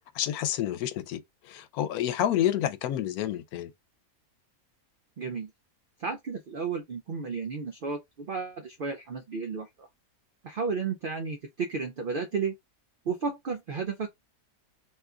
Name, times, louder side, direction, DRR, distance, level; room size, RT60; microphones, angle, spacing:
voice 1, 0.1-3.7, left 11 dB, 85° left, 1.1 m, -29 dB
voice 2, 5.2-5.5 6.0-9.9 10.4-12.6 13.1-14.1, right 5 dB, 80° right, 0.4 m, -33 dB
2.9 x 2.4 x 3.4 m
omnidirectional pair, 1.5 m